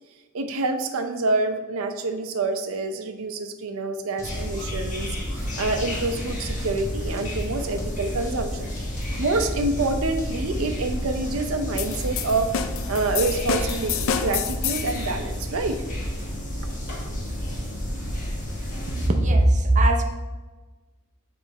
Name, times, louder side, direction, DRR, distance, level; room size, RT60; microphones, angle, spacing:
voice 1, 0.3-5.1 5.3-8.7 9.2-12.5 12.9-15.8, right 3 dB, 75° right, 7 dB, 0.6 m, -27 dB
sound 1, 4.2-19.1, equal, 40° left, 1.4 m, -31 dB
sound 2, 4.2-6.2 6.6-10.6, equal, 15° left, 0.8 m, -40 dB
sound 3, 11.8-15.1, left 7 dB, 65° left, 0.4 m, -29 dB
voice 2, 18.9-20.0, right 1 dB, 35° right, 4 dB, 0.6 m, -19 dB
7.1 x 3.3 x 4.0 m, 1.2 s
head